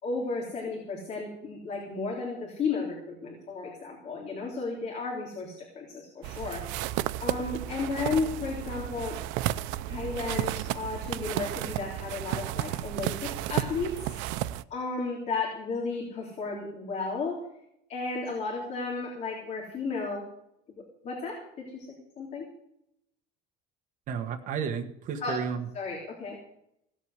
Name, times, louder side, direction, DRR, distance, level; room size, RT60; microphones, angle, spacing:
voice 1, 0.0-6.6 7.2-9.2 9.9-13.9 14.7-17.4 17.9-20.2 21.0-21.9 22.2-22.5 25.2-25.4 25.7-26.4, left 4 dB, 40° left, -2 dB, 3.6 m, -33 dB
sound 1, 6.2-14.6, right 14 dB, 90° right, 0.6 m, -33 dB
voice 2, 24.1-25.7, right 7 dB, 45° right, 3 dB, 1.5 m, -32 dB
17.5 x 8.3 x 8.1 m, 0.78 s
cardioid pair, 175°, 19 cm